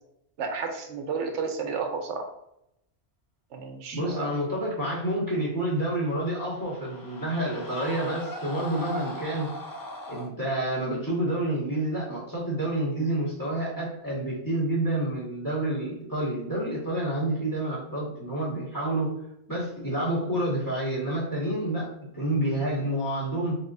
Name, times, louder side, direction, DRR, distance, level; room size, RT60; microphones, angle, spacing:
voice 1, 0.4-2.3 3.5-4.3, right 5 dB, 90° right, 5 dB, 1.0 m, -32 dB
voice 2, 3.9-9.5 10.1-19.1 19.5-21.9 22.1-23.6, right 1 dB, 15° left, -7 dB, 1.6 m, -28 dB
sound 1, 5.8-10.3, equal, 35° left, 0.3 m, -39 dB
4.2 x 3.8 x 2.6 m, 0.81 s
omnidirectional pair, 1.2 m